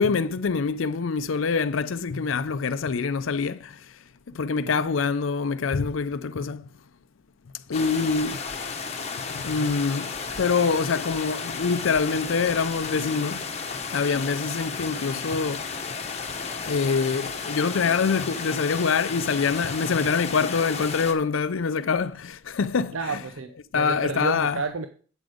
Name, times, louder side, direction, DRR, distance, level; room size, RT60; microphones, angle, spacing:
voice 1, 0.0-3.9 4.3-6.7 7.7-8.4 9.3-13.5 13.9-15.7 16.7-23.2 23.7-24.6, left 5 dB, 85° left, 0.5 m, -25 dB
sound 1, 7.7-21.1, left 5 dB, 35° left, 1.2 m, -33 dB
voice 2, 22.9-24.9, right 4 dB, 90° right, 0.7 m, -31 dB
8.2 x 7.8 x 5.0 m
head